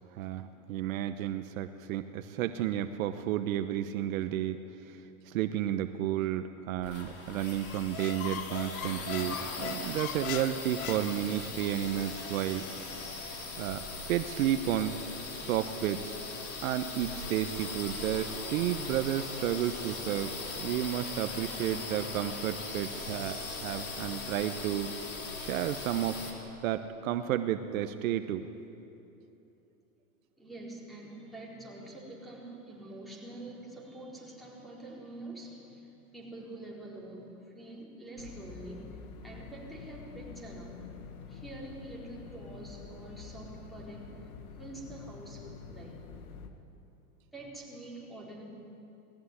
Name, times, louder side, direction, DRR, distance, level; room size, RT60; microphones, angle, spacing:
voice 1, 0.1-12.7 13.6-13.8 14.1-15.0 15.3-16.2 16.6-24.9 25.4-26.2 26.6-28.5, right 11 dB, 65° right, 9 dB, 1.0 m, -32 dB
sound 1, 6.8-26.3, left 3 dB, 30° left, 3.5 m, -40 dB
Squeak, 7.6-11.7, left 8 dB, 70° left, 1.3 m, -40 dB
voice 2, 30.4-40.9 41.3-44.3 44.6-46.0 47.3-48.4, right 2 dB, ahead, -3 dB, 4.1 m, -46 dB
sound 2, 38.2-46.5, left 5 dB, 90° left, 1.8 m, -47 dB
19.0 x 14.5 x 9.9 m, 2.9 s
supercardioid pair, 130°, 43 cm